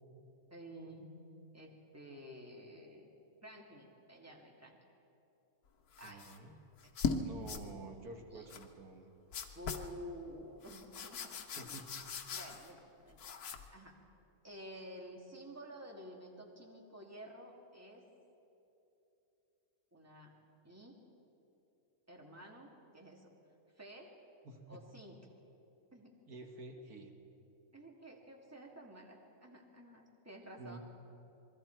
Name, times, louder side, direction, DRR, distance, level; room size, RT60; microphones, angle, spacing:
voice 1, 0.5-1.2 1.5-3.1 3.4-4.8 6.0-6.2 8.3-8.5 9.6-11.8 12.3-13.2 13.7-14.0 14.4-18.1 19.9-20.3 20.6-21.0 22.1-23.3 23.7-24.1 24.7-25.2 25.9-26.1 27.7-30.8, equal, 10° right, 0 dB, 2.1 m, -51 dB
sound 1, 5.9-6.4 6.8-7.2 7.5-7.7 8.5-8.7 9.3-9.9 10.6-12.8 13.1-13.7, left 6 dB, 85° left, 1.5 m, -40 dB
voice 2, 6.0-6.5 7.2-9.1 11.6-12.1 24.4-24.8 26.3-27.1 30.6-30.8, right 3 dB, 80° right, 3 dB, 2.0 m, -50 dB
27.0 x 21.5 x 4.5 m, 2.9 s
omnidirectional pair, 1.5 m